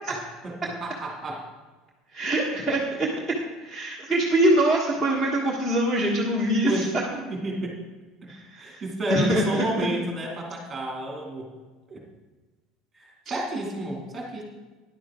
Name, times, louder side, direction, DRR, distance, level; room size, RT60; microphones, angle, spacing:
voice 1, 0.1-1.5 6.7-7.8 8.2-8.3 8.6-11.5 11.9-12.0 12.9-14.4, right 2 dB, 15° right, 0 dB, 2.3 m, -31 dB
voice 2, 2.1-3.1 3.6-6.8 8.3-8.8 9.1-9.9, right 1 dB, 5° left, -4 dB, 1.3 m, -24 dB
13.0 x 10.5 x 3.7 m, 1.3 s
cardioid pair, 175°, 0 cm